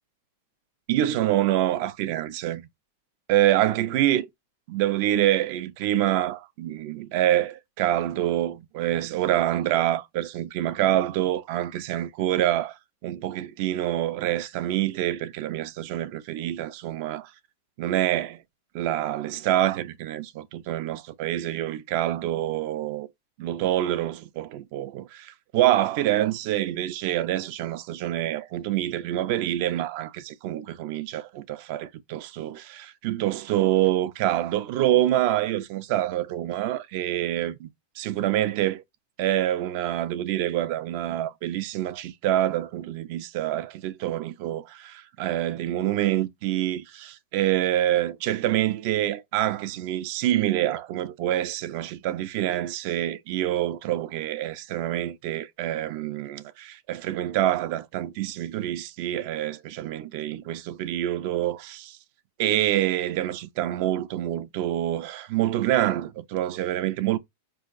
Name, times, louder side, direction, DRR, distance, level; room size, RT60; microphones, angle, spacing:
voice 1, 0.9-2.7 3.3-4.3 4.7-17.3 17.8-18.4 18.7-23.1 23.4-37.7 38.0-38.8 39.2-62.0 62.4-67.2, right 13 dB, 40° right, 0.3 m, -26 dB
4.4 x 2.7 x 2.4 m
supercardioid pair, 175°, 0 cm